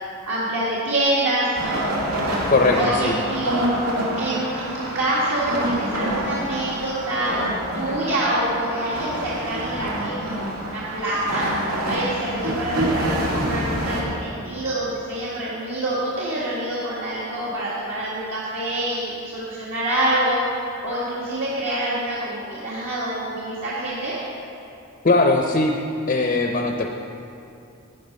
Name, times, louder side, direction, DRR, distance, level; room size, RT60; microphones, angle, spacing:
voice 1, 0.3-1.8 2.7-3.6 4.2-7.3 7.7-11.5 11.9-20.4 20.8-24.2, right 1 dB, 60° right, -8 dB, 1.8 m, -26 dB
sound 1, 1.6-14.0, right 1 dB, 80° right, 2.2 m, -27 dB
voice 2, 2.5-3.1 25.0-25.7 26.1-27.0, left 2 dB, 40° left, 3 dB, 0.6 m, -19 dB
12.0 x 9.3 x 5.2 m, 2.7 s
head